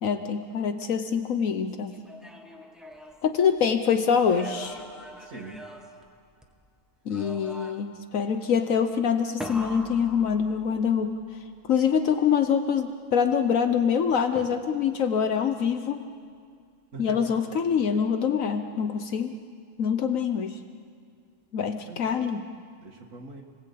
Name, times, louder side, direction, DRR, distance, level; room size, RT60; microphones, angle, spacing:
voice 1, 0.0-2.0 3.2-4.8 7.1-11.1 11.7-16.0 17.0-19.3 19.8-20.6 21.5-22.5, left 7 dB, 80° left, 7 dB, 1.4 m, -25 dB
sound 1, 1.9-3.8 4.2-6.7 7.1-8.1 9.4-11.0 14.4-15.0, equal, ahead, 1.6 m, -42 dB
voice 2, 5.2-5.6 16.9-17.5 21.8-22.2 22.8-23.4, right 3 dB, 70° right, -2 dB, 2.2 m, -42 dB
29.5 x 20.0 x 8.5 m, 2.2 s
omnidirectional pair, 1.4 m